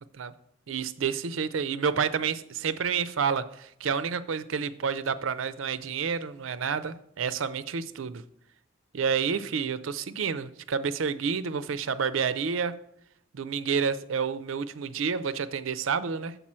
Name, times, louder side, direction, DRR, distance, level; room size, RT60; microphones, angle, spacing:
voice 1, 0.7-8.2 8.9-12.8 13.3-16.4, right 6 dB, 85° right, 14 dB, 0.5 m, -29 dB
7.4 x 6.8 x 4.3 m, 0.74 s
head